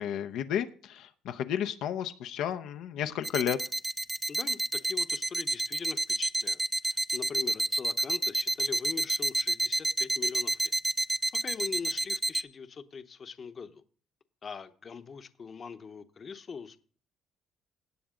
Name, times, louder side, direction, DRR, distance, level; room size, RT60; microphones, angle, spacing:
voice 1, 0.0-3.6, left 10 dB, 75° left, 8 dB, 0.7 m, -32 dB
sound 1, 3.2-12.4, right 2 dB, 15° right, 0.5 m, -28 dB
voice 2, 4.3-10.7 11.3-13.8 14.4-16.8, left 5 dB, 40° left, 10 dB, 0.9 m, -42 dB
17.5 x 7.1 x 3.8 m, 0.43 s
cardioid pair, 110°, 0 cm